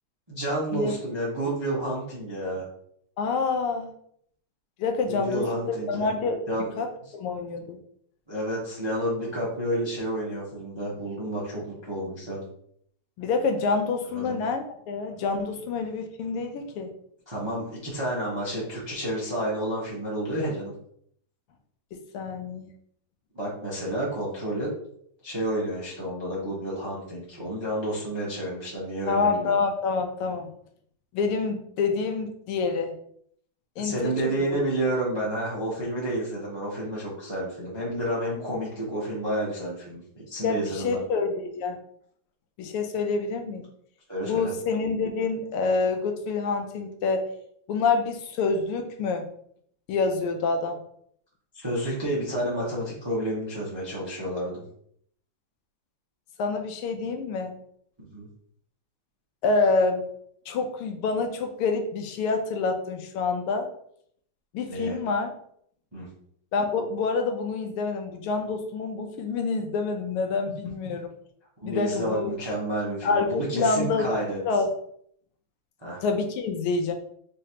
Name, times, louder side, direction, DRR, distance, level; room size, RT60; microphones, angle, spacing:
voice 1, 0.3-2.6 5.1-6.1 6.5-6.7 8.3-12.4 14.1-14.4 17.3-20.7 23.3-24.7 25.2-29.6 33.8-41.0 44.1-44.5 51.5-54.6 58.0-58.3 64.7-65.0 65.9-66.1 71.6-74.4 75.8-76.0, right 1 dB, 35° right, -7 dB, 0.4 m, -30 dB
voice 2, 3.2-3.9 4.8-6.4 6.8-6.9 7.1-7.8 13.2-16.9 21.9-22.7 29.1-30.5 31.1-32.9 33.8-34.6 40.4-41.8 42.6-43.7 44.2-47.3 47.7-49.3 49.9-50.8 56.4-57.6 59.4-60.0 60.5-63.7 64.5-65.3 66.5-71.1 71.6-72.3 73.0-74.1 74.5-74.7 76.0-76.9, left 4 dB, 85° left, 5 dB, 1.5 m, -27 dB
3.7 x 3.3 x 2.9 m, 0.66 s
omnidirectional pair, 2.4 m